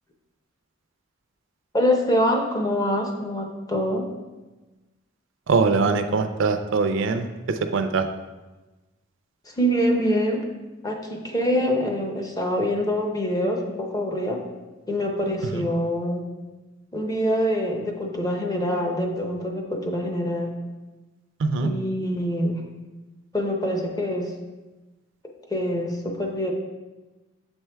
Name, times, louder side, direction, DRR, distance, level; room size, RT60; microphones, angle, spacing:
voice 1, 1.7-4.1 9.6-10.5 10.8-14.4 14.9-16.3 16.9-20.6 21.6-22.7 23.3-24.3 25.5-26.5, equal, 20° left, 2 dB, 0.7 m, -25 dB
voice 2, 5.5-8.1 15.4-15.7 21.4-21.7, right 4 dB, 65° right, 8 dB, 0.4 m, -23 dB
7.1 x 4.4 x 3.4 m, 1.2 s
head